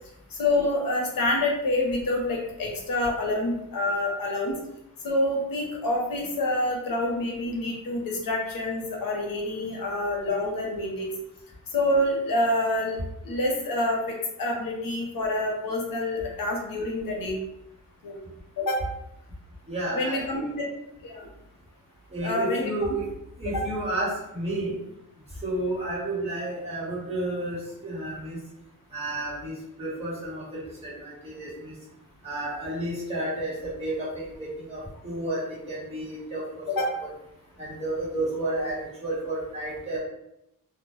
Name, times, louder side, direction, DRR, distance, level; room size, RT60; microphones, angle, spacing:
voice 1, 0.3-4.6 5.0-11.1 11.7-17.4 18.0-18.2 18.6-18.9 19.9-20.7 21.0-21.3 22.2-22.7 23.5-23.7 36.7-36.9, left 1 dB, 80° left, 0 dB, 0.7 m, -27 dB
voice 2, 19.7-20.6 22.1-23.1 23.4-24.7 25.4-28.4 28.9-31.7 32.2-36.9 37.6-40.0, right 1 dB, 20° right, -8 dB, 1.0 m, -31 dB
2.1 x 2.0 x 3.0 m, 0.84 s
wide cardioid pair, 160°, 34 cm